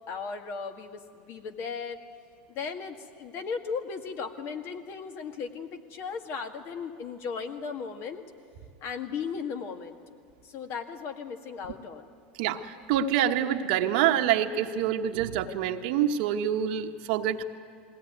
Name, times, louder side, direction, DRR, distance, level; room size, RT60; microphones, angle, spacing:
voice 1, 0.1-2.0 2.5-8.2 8.8-10.0 10.4-12.1, left 5 dB, 55° left, 5 dB, 1.9 m, -36 dB
voice 2, 12.4-17.4, right 10 dB, 70° right, 5 dB, 1.2 m, -26 dB
21.0 x 17.5 x 9.3 m, 2.3 s
supercardioid pair, 105°, 5 cm